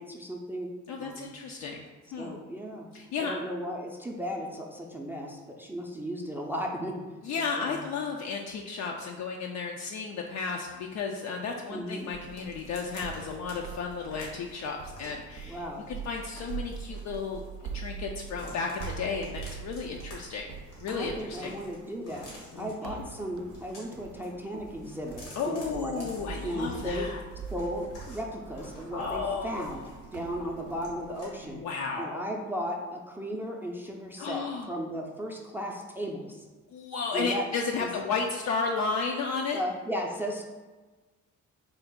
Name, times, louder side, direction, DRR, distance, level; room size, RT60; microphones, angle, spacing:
voice 1, 0.0-1.3 2.2-2.9 3.2-7.0 7.6-7.8 11.7-12.1 15.5-15.9 20.9-22.3 22.6-26.1 26.4-27.1 27.5-31.6 32.0-36.5 37.1-37.4 37.8-37.9 39.5-40.4, equal, 5° right, 0 dB, 0.4 m, -35 dB
voice 2, 0.9-1.8 2.1-2.3 2.9-3.4 7.2-17.4 17.7-20.5 20.8-21.5 22.5-23.0 25.4-27.2 28.9-29.7 31.4-32.2 34.2-34.7 36.7-39.6, left 5 dB, 65° left, 1 dB, 0.4 m, -33 dB
sound 1, 11.9-13.6 13.9-15.2 15.7-17.7 18.0-18.9 19.2-20.1 20.4-22.7 23.3-24.3 24.6-26.9 27.3-30.1 30.5-31.3, left 1 dB, 90° left, 1.4 m, -50 dB
sound 2, 12.1-31.6, right 6 dB, 85° right, 0.5 m, -43 dB
3.9 x 2.4 x 3.6 m, 1.3 s
cardioid pair, 90°, 30 cm